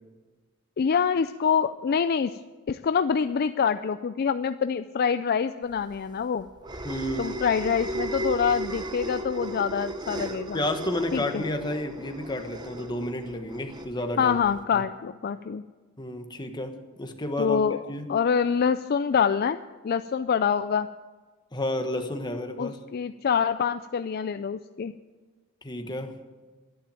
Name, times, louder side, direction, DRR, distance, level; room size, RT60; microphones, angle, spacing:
voice 1, 0.8-2.4 2.7-6.5 7.2-10.6 11.1-11.4 14.2-15.6 17.4-17.8 18.1-19.6 19.8-20.9 22.6-24.9, left 6 dB, 45° left, 11 dB, 0.4 m, -25 dB
sound 1, 5.8-14.6, right 1 dB, 20° right, 0.9 m, -35 dB
voice 2, 6.8-7.3 10.1-10.2 10.5-14.4 14.7-14.8 16.0-18.2 21.5-22.8 25.6-26.2, left 1 dB, 20° left, 5 dB, 1.2 m, -31 dB
12.0 x 10.5 x 9.0 m, 1.3 s
head